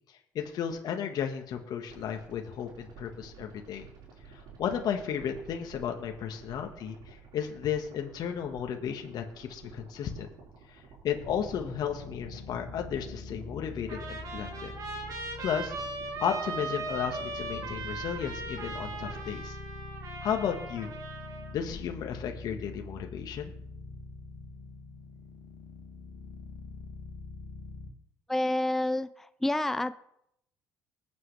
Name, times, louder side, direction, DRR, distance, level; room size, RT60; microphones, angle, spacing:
voice 1, 0.1-3.9 4.3-10.3 10.7-14.7 15.4-15.7 16.2-19.6 20.2-20.9 21.5-23.5, left 8 dB, 60° left, 3 dB, 1.5 m, -34 dB
sound 1, 1.9-19.2, right 5 dB, 75° right, 4.4 m, -52 dB
sound 2, 11.2-27.9, left 3 dB, 85° left, 2.0 m, -44 dB
Trumpet, 13.9-21.5, right 3 dB, 55° right, 2.9 m, -38 dB
voice 2, 28.3-29.9, left 1 dB, 5° left, 12 dB, 0.5 m, -28 dB
20.0 x 7.8 x 3.3 m, 0.76 s
supercardioid pair, 80°, 8 cm